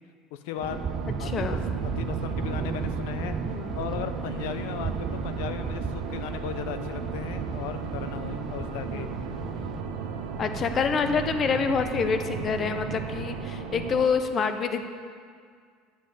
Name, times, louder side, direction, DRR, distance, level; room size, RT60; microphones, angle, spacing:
voice 1, 0.3-0.8 1.2-3.4 3.7-9.1, left 10 dB, 80° left, 10 dB, 0.8 m, -36 dB
sound 1, 0.6-9.8, right 5 dB, 30° right, 0.5 m, -35 dB
sound 2, 0.6-14.0, right 5 dB, 80° right, 1.5 m, -36 dB
voice 2, 1.2-1.6 3.5-3.7 8.9-9.2 10.4-14.9, left 5 dB, 40° left, 8 dB, 0.9 m, -27 dB
sound 3, 1.4-13.5, right 7 dB, 65° right, 0.7 m, -41 dB
10.5 x 7.4 x 6.8 m, 2.1 s
supercardioid pair, 110°, 0 cm